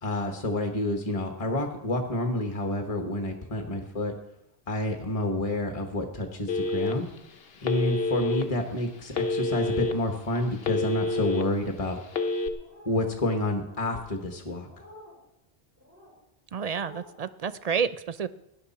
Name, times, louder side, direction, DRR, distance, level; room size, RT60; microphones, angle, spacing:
voice 1, 0.0-4.1 4.7-7.1 7.6-12.0 12.8-14.7, left 1 dB, 35° left, 3 dB, 1.4 m, -29 dB
Telephone, 6.5-7.2 7.6-8.4 9.1-9.9 10.3-11.4 12.1-12.5, left 2 dB, 65° left, 1.2 m, -28 dB
sound 1, 12.6-13.1 13.6-14.1 14.6-15.2 15.8-16.1 16.6-17.1, equal, 15° right, 4.6 m, -50 dB
voice 2, 16.5-18.3, right 6 dB, 50° right, 14 dB, 0.5 m, -29 dB
18.0 x 11.0 x 4.2 m, 0.84 s
omnidirectional pair, 1.1 m